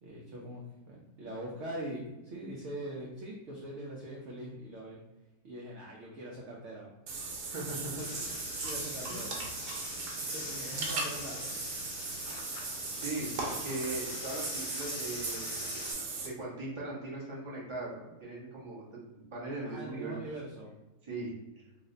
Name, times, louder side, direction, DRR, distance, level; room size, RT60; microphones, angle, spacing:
voice 1, 0.0-5.0 5.4-6.9 8.6-9.3 10.2-11.4 19.6-20.7, right 1 dB, 65° right, -2 dB, 0.7 m, -42 dB
Water / Bathtub (filling or washing), 7.1-16.3, right 3 dB, 80° right, 1.3 m, -38 dB
voice 2, 7.4-8.2 9.1-9.2 13.0-13.3 13.6-15.7 16.2-20.2 21.0-21.4, right 2 dB, 25° right, -5 dB, 0.7 m, -39 dB
sound 1, 8.0-15.9, left 4 dB, 70° left, 0.6 m, -44 dB
3.2 x 2.1 x 3.7 m, 1.0 s
omnidirectional pair, 1.8 m